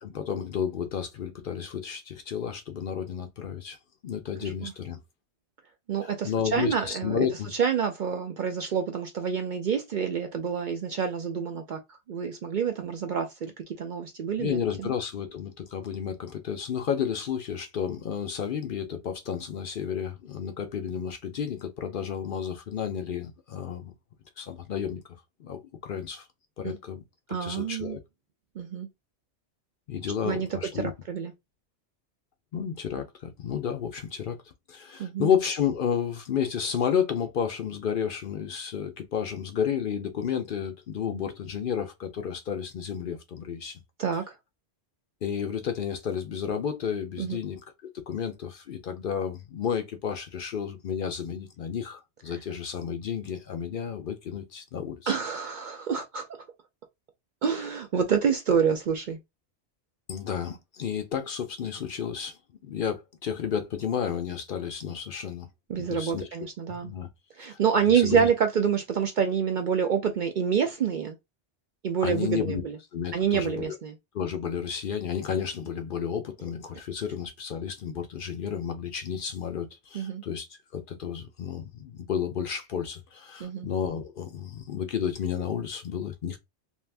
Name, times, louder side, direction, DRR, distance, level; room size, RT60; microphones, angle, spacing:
voice 1, 0.0-3.8 4.0-5.0 6.0-7.5 14.4-23.9 24.4-25.0 25.4-26.3 26.6-27.0 27.4-28.0 29.9-30.9 32.5-34.4 34.7-43.8 45.2-47.6 48.1-55.1 60.1-65.5 65.8-66.3 66.7-67.1 67.5-67.6 67.9-68.3 72.0-72.6 72.9-73.8 74.1-86.4, left 8 dB, 60° left, 0.6 m, -31 dB
voice 2, 4.4-4.7 5.9-11.8 12.1-14.9 26.6-26.8 27.3-28.0 28.6-28.9 30.2-30.5 30.7-31.3 35.0-35.3 44.0-44.3 47.2-47.4 55.1-56.3 57.4-59.2 65.7-66.9 67.4-71.2 71.8-72.8 73.1-74.0 79.9-80.2 83.4-83.7, right 7 dB, 55° right, 0.5 m, -27 dB
2.6 x 2.4 x 3.3 m
omnidirectional pair, 1.2 m